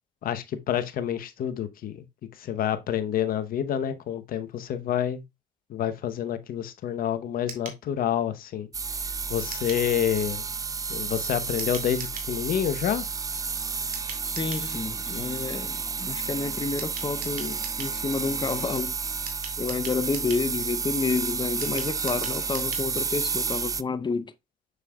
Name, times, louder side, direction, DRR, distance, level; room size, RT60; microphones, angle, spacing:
voice 1, 0.2-2.0 2.4-5.2 5.7-8.7 9.3-10.5 10.9-13.0 15.2-15.3, left 10 dB, 55° left, 0.9 m, -28 dB
sound 1, 7.5-7.8 9.5-9.9 11.6-12.3 13.9-14.7 16.8-18.0 19.3-20.5 21.6-22.9 23.2-23.3 23.5-23.6, right 6 dB, 55° right, 2.3 m, -41 dB
sound 2, 8.7-23.8, right 5 dB, 20° right, 0.4 m, -31 dB
voice 2, 14.3-19.0 19.6-24.3, left 4 dB, 25° left, 0.8 m, -30 dB
6.5 x 6.5 x 2.3 m
hypercardioid pair, 65°, 17 cm